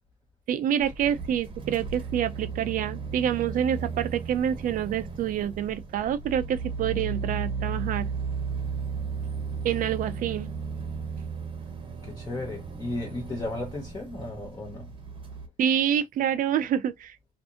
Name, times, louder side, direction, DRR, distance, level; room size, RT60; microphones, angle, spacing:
voice 1, 0.5-8.1 9.6-10.5 15.6-17.3, right 9 dB, 55° right, 0.5 m, -27 dB
sound 1, 0.8-15.5, right 5 dB, 30° right, 0.9 m, -35 dB
voice 2, 12.0-14.9, left 2 dB, 20° left, 0.7 m, -35 dB
2.6 x 2.5 x 2.5 m
cardioid pair, 110°, 17 cm